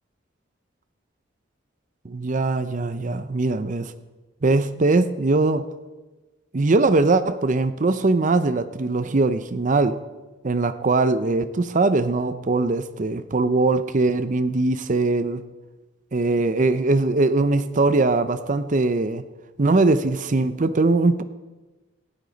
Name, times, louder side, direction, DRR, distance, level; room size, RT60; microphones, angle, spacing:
voice 1, 2.0-3.9 4.4-5.7 6.5-10.0 10.4-15.4 16.1-19.2 19.6-21.2, right 3 dB, 40° right, 12 dB, 0.6 m, -21 dB
17.5 x 13.5 x 4.0 m, 1.2 s
head